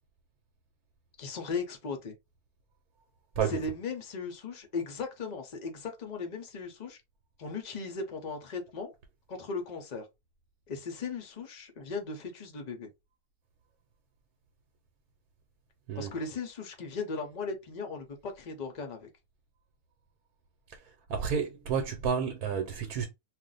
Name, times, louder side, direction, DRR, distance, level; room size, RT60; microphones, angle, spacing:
voice 1, 1.2-2.2 3.5-7.0 7.4-8.9 9.3-10.1 10.7-12.9 15.9-19.1, left 4 dB, 65° left, 0.4 m, -37 dB
voice 2, 21.1-23.1, right 7 dB, 80° right, 1.1 m, -30 dB
2.5 x 2.1 x 3.9 m
omnidirectional pair, 1.6 m